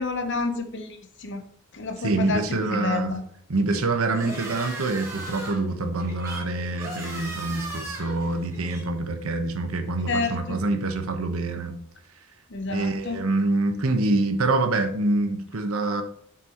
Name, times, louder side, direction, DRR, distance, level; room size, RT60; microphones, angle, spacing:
voice 1, 0.0-1.4 1.7-3.2 4.1-4.3 10.1-10.4 12.5-13.2, left 3 dB, 55° left, 7 dB, 0.9 m, -29 dB
voice 2, 2.0-3.2 3.5-11.8 12.7-16.0, right 2 dB, 70° right, 6 dB, 1.1 m, -26 dB
sound 1, 3.7-8.8, right 2 dB, 15° right, 2.1 m, -38 dB
7.6 x 6.1 x 3.0 m, 0.64 s
head